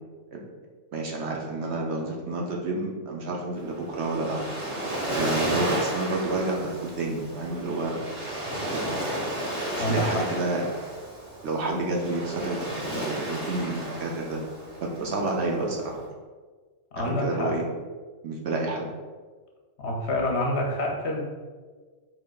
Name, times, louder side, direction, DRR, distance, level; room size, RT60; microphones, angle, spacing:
voice 1, 0.9-4.5 5.2-8.0 8.7-9.0 9.8-10.8 11.4-14.4 14.8-16.0 17.0-17.6 18.2-18.9, right 2 dB, 60° right, -1 dB, 0.8 m, -29 dB
Waves surf, 3.6-16.0, right 1 dB, 25° right, 1.3 m, -33 dB
voice 2, 9.8-10.2 16.9-17.5 19.8-21.3, left 1 dB, 60° left, -1 dB, 0.9 m, -27 dB
5.1 x 3.9 x 2.3 m, 1.4 s
omnidirectional pair, 1.4 m